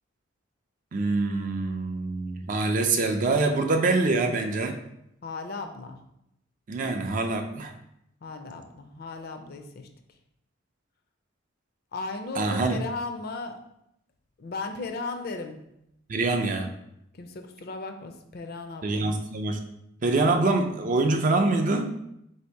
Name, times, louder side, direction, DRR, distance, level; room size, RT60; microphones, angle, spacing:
voice 1, 0.9-4.8 6.7-7.7 12.4-12.8 16.1-16.7 18.8-19.6 20.0-22.0, right 3 dB, 40° right, 5 dB, 0.4 m, -25 dB
voice 2, 5.2-6.0 8.2-9.9 11.9-13.6 14.4-15.6 16.4-16.5 17.2-19.1, left 3 dB, 50° left, 6 dB, 0.4 m, -36 dB
3.4 x 2.7 x 4.4 m, 0.79 s
head